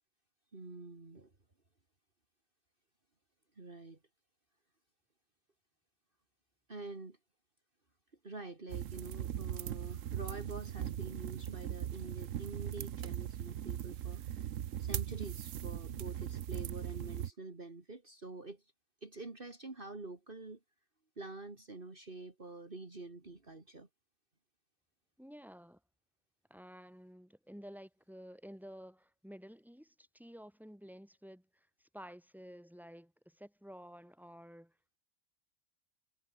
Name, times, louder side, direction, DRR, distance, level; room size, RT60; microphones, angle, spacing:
voice 1, 0.5-1.3 3.5-4.0 6.7-7.2 8.2-14.5 14.8-18.7 19.0-20.6 21.2-23.9, right 3 dB, 40° right, 3.0 m, -47 dB
sound 1, 8.7-17.3, right 11 dB, 80° right, 1.2 m, -39 dB
voice 2, 25.2-25.8 26.5-31.4 31.9-34.7, equal, ahead, 6.9 m, -52 dB
omnidirectional pair, 1.3 m